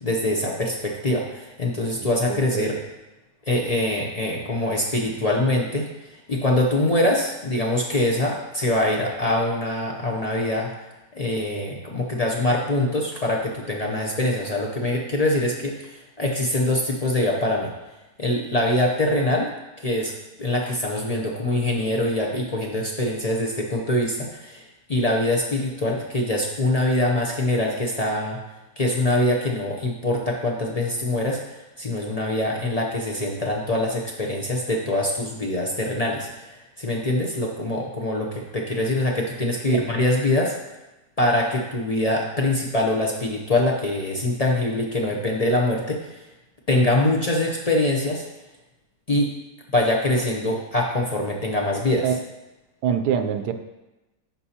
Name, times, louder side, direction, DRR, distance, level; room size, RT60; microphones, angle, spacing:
voice 1, 0.0-2.8 3.5-10.7 11.1-17.7 18.2-19.5 19.8-20.1 20.4-28.4 28.8-40.6 41.2-46.2 46.7-48.3 49.1-49.3 49.7-52.1, left 1 dB, 50° left, -1 dB, 0.4 m, -24 dB
voice 2, 2.3-2.8 39.7-39.8 52.0-52.2 52.8-53.5, right 8 dB, 85° right, 8 dB, 1.2 m, -24 dB
9.8 x 5.3 x 2.8 m, 1.0 s
omnidirectional pair, 1.7 m